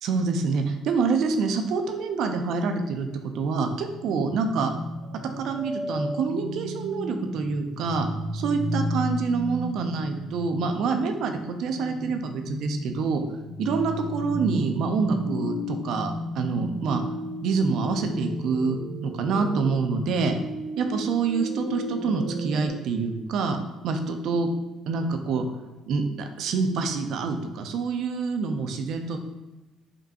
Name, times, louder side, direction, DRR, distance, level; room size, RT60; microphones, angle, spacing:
voice 1, 0.0-3.1 3.3-4.7 5.4-8.1 8.3-13.2 13.6-17.0 17.4-18.8 19.0-20.3 20.8-23.6 23.8-24.5 24.9-25.4 25.9-26.0 26.4-29.2, right 4 dB, 65° right, 5 dB, 0.5 m, -26 dB
sound 1, 4.1-22.7, equal, 55° left, 1.5 m, -34 dB
5.1 x 2.2 x 2.8 m, 1.1 s
hypercardioid pair, 60°, 0 cm